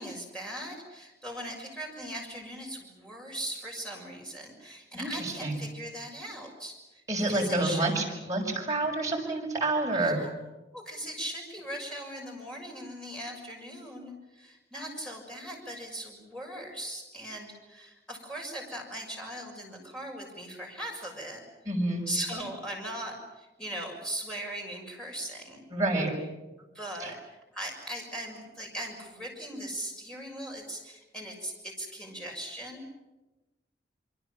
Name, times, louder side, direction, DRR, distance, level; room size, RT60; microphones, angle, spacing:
voice 1, 0.0-7.9 9.9-10.3 10.7-21.4 22.1-25.6 26.6-32.9, right 1 dB, 5° left, -1 dB, 6.6 m, -39 dB
voice 2, 4.9-5.6 7.1-10.2 21.7-22.1 25.7-26.1 27.0-27.1, right 2 dB, 20° right, -2 dB, 6.2 m, -28 dB
26.0 x 24.5 x 7.4 m, 1.1 s
head